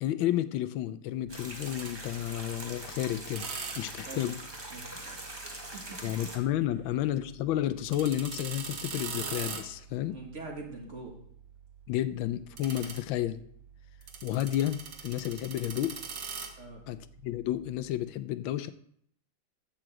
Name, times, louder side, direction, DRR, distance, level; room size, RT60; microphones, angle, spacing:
voice 1, 0.0-3.5 3.8-4.3 6.0-10.2 11.9-13.4 14.2-15.9 16.9-18.7, left 12 dB, 85° left, 13 dB, 1.4 m, -31 dB
sound 1, 1.3-6.4, right 1 dB, 15° right, 1.3 m, -43 dB
sound 2, 1.3-18.0, right 5 dB, 70° right, 1.9 m, -44 dB
voice 2, 4.7-6.1 10.1-11.2 16.6-16.8, right 3 dB, 40° right, 1 dB, 1.8 m, -44 dB
11.0 x 5.0 x 7.6 m, 0.68 s
omnidirectional pair, 2.1 m